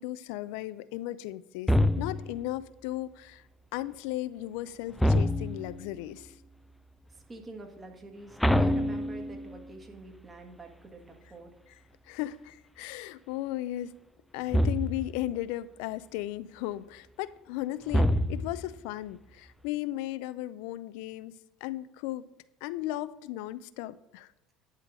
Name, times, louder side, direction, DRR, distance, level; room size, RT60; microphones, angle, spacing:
voice 1, 0.0-3.4 3.7-6.4 12.0-13.9 14.3-22.3 22.6-24.3, left 15 dB, 75° left, 15 dB, 0.4 m, -36 dB
sound 1, 1.7-2.4 5.0-5.8 8.4-9.6 14.5-15.2 17.9-18.7, left 1 dB, 5° left, 0.4 m, -26 dB
voice 2, 7.3-11.6, right 2 dB, 25° right, 3 dB, 1.8 m, -46 dB
11.0 x 3.8 x 7.4 m, 0.97 s
supercardioid pair, 110°, 0 cm